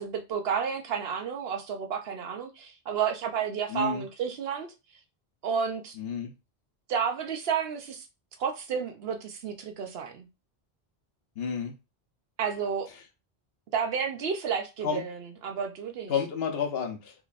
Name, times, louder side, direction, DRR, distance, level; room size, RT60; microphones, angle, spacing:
voice 1, 0.0-4.7 5.4-6.0 6.9-8.1 8.4-10.3 12.4-12.9 13.7-16.1, right 7 dB, 75° right, 0.9 m, -31 dB
voice 2, 3.7-4.0 6.0-6.3 11.4-11.7 14.8-15.0 16.1-17.3, left 6 dB, 75° left, 1.0 m, -30 dB
3.7 x 3.1 x 2.5 m
omnidirectional pair, 1.1 m